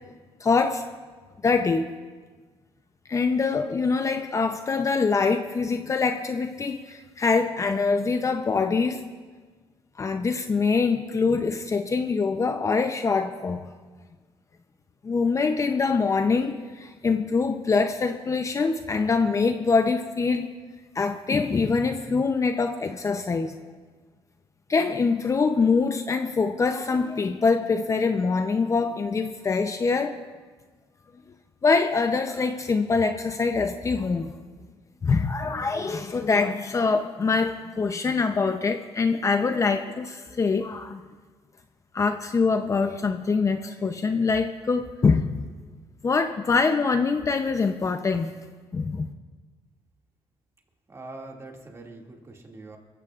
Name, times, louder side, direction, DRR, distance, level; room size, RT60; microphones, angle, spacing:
voice 1, 0.4-0.8 1.4-1.9 3.1-9.0 10.0-13.6 15.0-20.5 20.9-23.5 24.7-30.1 31.6-34.3 35.0-41.0 41.9-45.4 46.0-48.3 48.7-49.1, left 4 dB, 30° left, 7 dB, 0.6 m, -24 dB
voice 2, 50.9-52.8, right 2 dB, 30° right, 0 dB, 2.3 m, -43 dB
26.0 x 15.0 x 2.5 m, 1.4 s
cardioid pair, 110°, 10 cm